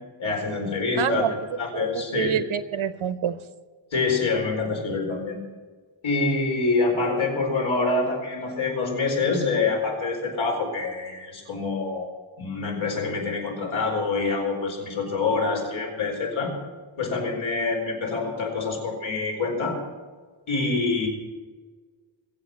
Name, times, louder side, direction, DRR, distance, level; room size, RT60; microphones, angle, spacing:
voice 1, 0.2-2.4 3.9-5.4 6.0-12.1 12.4-16.5 17.0-19.8 20.5-21.1, left 3 dB, 75° left, 0 dB, 4.6 m, -26 dB
voice 2, 1.0-1.3 1.7-3.4, right 8 dB, 90° right, 11 dB, 1.0 m, -27 dB
22.5 x 8.1 x 6.2 m, 1.4 s
wide cardioid pair, 170°, 48 cm